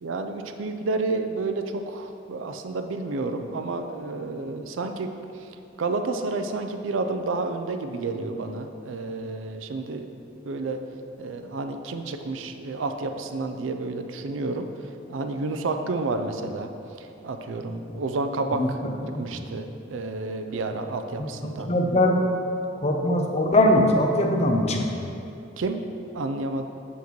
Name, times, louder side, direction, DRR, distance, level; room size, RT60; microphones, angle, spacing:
voice 1, 0.0-5.1 5.4-5.5 5.8-10.1 10.5-10.8 11.2-14.7 15.1-16.7 17.0-18.8 19.2-21.7 25.6-25.8 26.1-26.6, right 3 dB, 85° right, 6 dB, 0.5 m, -30 dB
voice 2, 21.7-22.3 22.8-25.1, left 1 dB, 35° left, 2 dB, 0.6 m, -21 dB
7.1 x 6.7 x 3.1 m, 2.6 s
head